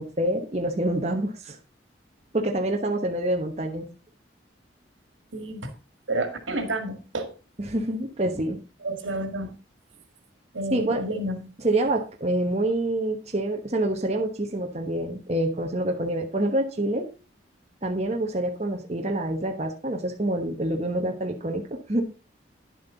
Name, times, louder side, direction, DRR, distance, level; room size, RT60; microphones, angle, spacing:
voice 1, 0.0-1.6 2.3-3.9 7.6-8.6 10.7-11.0 11.6-17.1 17.8-22.0, right 1 dB, 35° right, 2 dB, 1.1 m, -27 dB
voice 2, 5.3-5.7 6.1-7.3 8.8-9.5 10.5-11.4, right 1 dB, 85° right, 7 dB, 1.9 m, -30 dB
10.0 x 7.5 x 3.9 m, 0.32 s
head